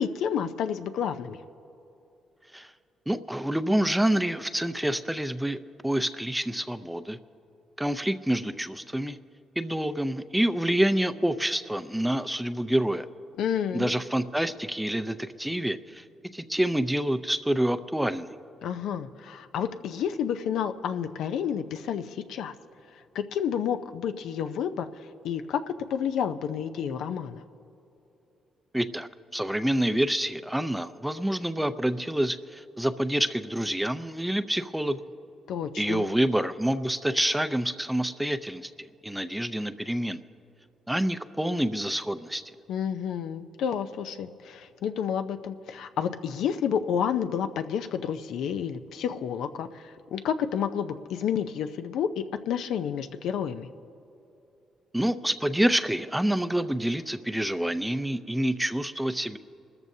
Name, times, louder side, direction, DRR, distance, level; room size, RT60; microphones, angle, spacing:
voice 1, 0.0-1.4 13.4-13.9 18.6-22.5 23.1-27.4 35.5-36.0 42.7-53.7, left 8 dB, 80° left, 9 dB, 0.6 m, -30 dB
voice 2, 3.1-5.6 5.8-7.2 7.8-9.2 9.6-13.1 13.7-16.0 16.3-18.3 28.7-35.0 35.8-40.2 40.9-42.4 54.9-59.4, right 1 dB, 5° right, 11 dB, 0.5 m, -27 dB
28.0 x 13.5 x 2.7 m, 2.9 s
cardioid pair, 90°, 0 cm